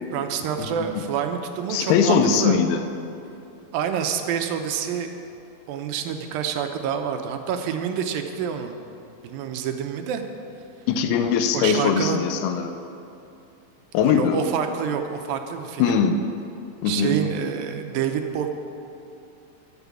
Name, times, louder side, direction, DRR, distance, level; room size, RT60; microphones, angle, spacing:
voice 1, 0.1-2.6 3.7-5.2 5.7-8.8 9.2-10.2 11.5-12.2 14.1-16.0 16.9-18.5, right 8 dB, 75° right, 6 dB, 2.3 m, -27 dB
voice 2, 1.7-2.8 10.9-12.7 13.9-14.4 15.8-16.2 16.8-17.2, left 6 dB, 80° left, 7 dB, 2.5 m, -21 dB
12.0 x 8.1 x 7.2 m, 2.7 s
omnidirectional pair, 4.6 m